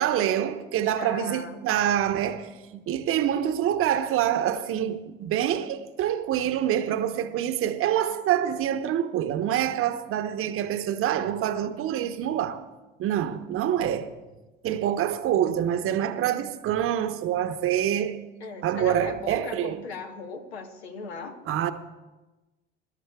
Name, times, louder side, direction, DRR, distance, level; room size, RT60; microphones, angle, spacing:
voice 1, 0.0-12.6 13.0-14.2 14.6-18.2 18.6-19.8 21.5-21.7, right 10 dB, 45° right, 1.0 m, -26 dB
voice 2, 0.8-1.6 18.4-21.4, left 4 dB, 75° left, 1.3 m, -38 dB
24.0 x 12.5 x 2.3 m
figure-of-eight pair, 65°, 32 cm